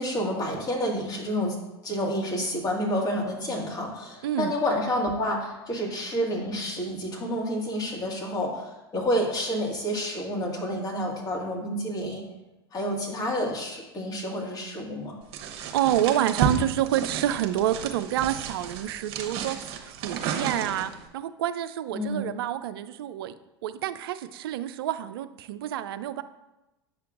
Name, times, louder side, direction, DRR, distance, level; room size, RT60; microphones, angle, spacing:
voice 1, 0.0-1.6 1.8-12.2 12.7-15.2 21.9-22.3, equal, 30° left, -1 dB, 1.7 m, -29 dB
voice 2, 4.2-4.5 15.4-23.3 23.6-26.2, right 12 dB, 70° right, 12 dB, 0.4 m, -28 dB
sound 1, 15.3-21.0, right 6 dB, 50° right, 1.0 m, -32 dB
7.5 x 5.8 x 2.5 m, 0.99 s
hypercardioid pair, 90°, 13 cm